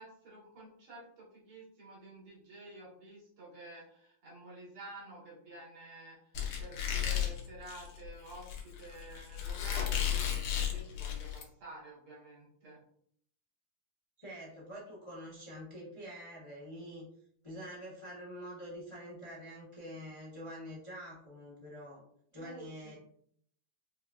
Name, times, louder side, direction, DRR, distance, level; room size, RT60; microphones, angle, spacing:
voice 1, 0.0-12.8 22.4-23.0, right 2 dB, 85° right, -6 dB, 2.3 m, -50 dB
Squeak, 6.3-11.4, left 9 dB, 85° left, 1.6 m, -34 dB
voice 2, 14.2-17.1 17.4-22.0 22.3-23.0, equal, 40° left, -6 dB, 0.4 m, -46 dB
4.8 x 2.3 x 2.3 m, 0.65 s
omnidirectional pair, 2.3 m